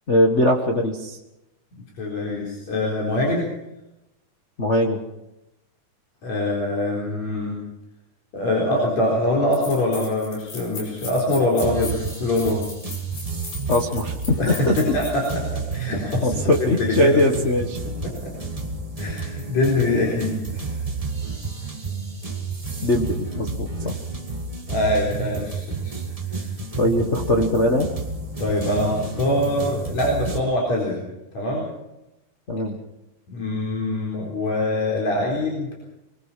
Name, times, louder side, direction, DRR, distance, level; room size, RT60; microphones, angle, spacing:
voice 1, 0.1-1.2 4.6-5.0 13.7-15.0 16.2-17.8 22.8-23.9 26.8-27.9 32.5-32.8, left 1 dB, 65° left, 0 dB, 0.7 m, -21 dB
voice 2, 2.0-3.5 6.2-7.6 8.3-12.6 14.4-17.2 18.2-18.3 19.0-20.7 23.8-23.9 24.7-26.0 28.4-31.0 31.3-31.7 33.3-35.7, left 2 dB, 50° left, -3 dB, 5.3 m, -24 dB
sound 1, 9.5-15.4, left 4 dB, 85° left, 7.4 m, -37 dB
sound 2, 11.6-30.4, right 4 dB, 25° right, 0.7 m, -31 dB
23.5 x 21.5 x 5.7 m, 0.92 s
omnidirectional pair, 4.1 m